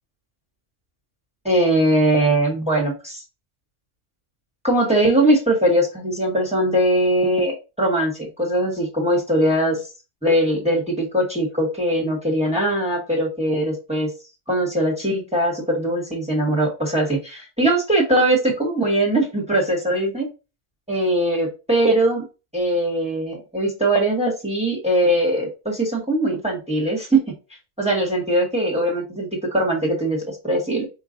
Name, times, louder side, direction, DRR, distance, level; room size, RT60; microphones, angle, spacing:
voice 1, 1.4-3.2 4.6-9.8 10.2-14.1 14.5-20.3 20.9-22.2 22.5-27.3 27.8-30.9, right 1 dB, 5° right, 0 dB, 0.9 m, -21 dB
4.8 x 2.3 x 3.7 m, 0.30 s
omnidirectional pair, 1.3 m